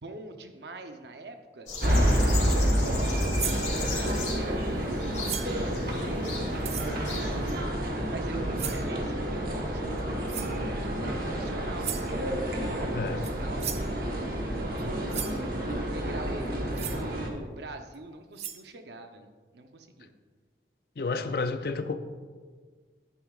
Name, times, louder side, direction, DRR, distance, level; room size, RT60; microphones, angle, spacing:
voice 1, 0.0-1.7 2.0-3.1 3.6-7.4 8.1-12.1 12.5-14.0 14.5-20.1, right 2 dB, 75° right, 6 dB, 0.8 m, -43 dB
sound 1, 1.7-7.5, left 4 dB, 45° left, 2.4 m, -38 dB
sound 2, 1.8-17.3, equal, 55° right, 1.2 m, -29 dB
sound 3, 3.4-3.7 5.2-5.6 6.6-6.9 8.6-8.9 10.3-10.6 11.8-12.1 13.2-13.3 13.6-13.9 14.8-14.9 15.1-15.4 16.7-17.0 17.9-18.0 18.3-18.6, right 10 dB, 35° right, 0.4 m, -35 dB
voice 2, 21.0-22.0, left 3 dB, 60° left, 9 dB, 0.5 m, -30 dB
11.0 x 9.3 x 2.4 m, 1.6 s
head